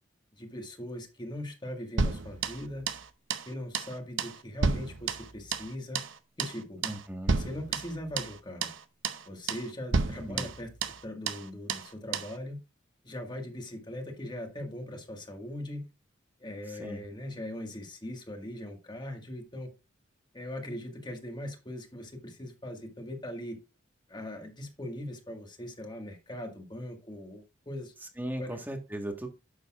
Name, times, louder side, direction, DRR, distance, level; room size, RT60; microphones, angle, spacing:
voice 1, 0.4-2.9 3.4-6.0 6.4-6.8 7.3-8.7 9.3-10.7 11.0-12.6 13.0-15.9 16.4-19.7 20.3-23.6 24.1-27.9 28.4-28.6, left 1 dB, 25° left, 4 dB, 1.7 m, -40 dB
sound 1, 2.0-3.0 3.3-3.5 3.7-5.7 5.9-6.1 6.4-6.6 6.8-7.0 7.3-8.3 8.6-8.8 9.0-9.2 9.5-9.7 9.9-11.0 11.3-11.4 11.7-11.9 12.1-12.3, right 4 dB, 85° right, 0.8 m, -31 dB
voice 2, 6.8-7.3 10.3-10.5 16.8-17.0 28.2-29.3, right 1 dB, 10° right, 4 dB, 1.4 m, -37 dB
9.9 x 6.8 x 2.4 m, 0.29 s
head